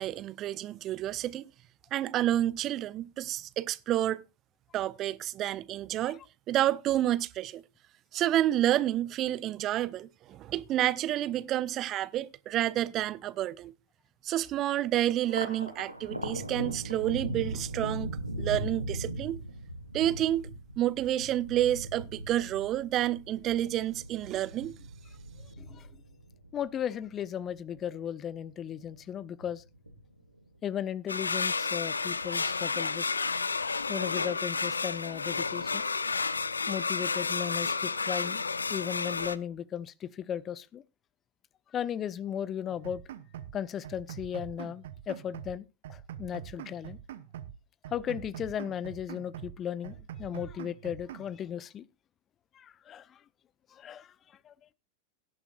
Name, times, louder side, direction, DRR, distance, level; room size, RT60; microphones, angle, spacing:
voice 1, 0.0-1.5 1.9-4.2 4.7-6.2 6.5-7.6 8.1-13.7 14.2-18.1 18.4-19.4 19.9-24.7, right 13 dB, 35° right, 0.6 m, -29 dB
Thunder, 15.2-27.9 28.3-29.1 29.4-30.3, right 1 dB, 90° right, 1.4 m, -39 dB
voice 2, 25.6-25.9 26.5-29.6 30.6-33.1 33.9-35.8 36.7-38.4 38.7-40.8 41.7-43.0 43.5-45.6 45.9-47.0 47.9-51.9 52.5-53.2 53.7-54.5, left 9 dB, 25° left, 0.5 m, -36 dB
sound 1, 31.1-39.4, left 4 dB, 75° left, 0.5 m, -31 dB
sound 2, 42.7-43.6 43.8-45.6 45.8-47.6 47.8-49.6 49.8-51.3, right 10 dB, 55° right, 0.9 m, -44 dB
17.5 x 10.5 x 2.4 m
figure-of-eight pair, 90°, 0 cm